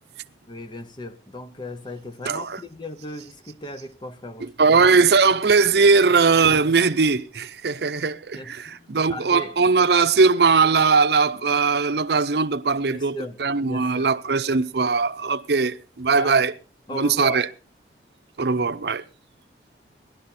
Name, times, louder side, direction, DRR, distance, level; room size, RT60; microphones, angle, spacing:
voice 1, 0.5-4.8 8.3-9.6 12.8-13.4 13.7-14.1 16.2-16.5 16.9-17.4, left 1 dB, 25° left, 0.8 m, -37 dB
voice 2, 2.2-2.6 4.4-16.5 16.9-17.5 18.4-19.0, right 4 dB, 70° right, 0.7 m, -20 dB
18.0 x 11.5 x 4.2 m
head